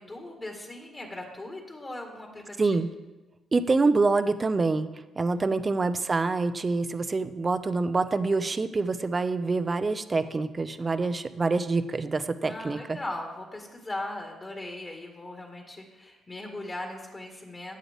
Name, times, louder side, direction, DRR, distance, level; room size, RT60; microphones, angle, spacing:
voice 1, 0.0-2.8 5.3-5.6 12.4-17.8, left 1 dB, 25° left, 1 dB, 1.9 m, -39 dB
voice 2, 2.6-2.9 3.5-4.9 5.2-13.0, right 3 dB, 30° right, 11 dB, 0.7 m, -26 dB
15.0 x 8.7 x 3.6 m, 1.1 s
cardioid pair, 90°, 0 cm